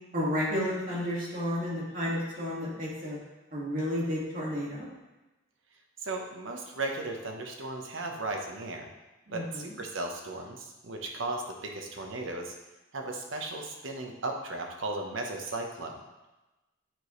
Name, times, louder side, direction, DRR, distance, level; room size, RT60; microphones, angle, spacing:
voice 1, 0.1-3.2 3.5-4.9 9.3-9.4, equal, 45° right, -5 dB, 2.0 m, -31 dB
voice 2, 6.0-8.9 9.3-12.5 12.9-16.0, right 2 dB, 85° right, 2 dB, 1.0 m, -36 dB
9.0 x 5.0 x 3.2 m, 1.1 s
head